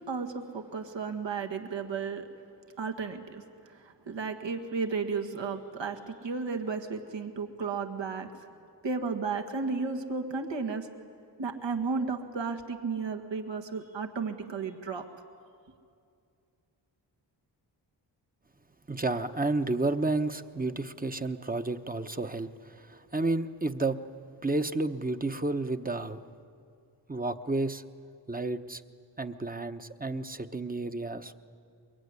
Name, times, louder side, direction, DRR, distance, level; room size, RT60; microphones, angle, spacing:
voice 1, 0.0-2.3 2.8-8.3 8.8-10.9 11.4-15.0, right 4 dB, 75° right, 5 dB, 1.9 m, -33 dB
voice 2, 18.9-24.0 24.4-26.2 27.1-27.8 28.3-28.8 29.2-31.4, right 2 dB, 20° right, 8 dB, 1.0 m, -31 dB
23.0 x 22.5 x 9.7 m, 2.4 s
cardioid pair, 70°, 45 cm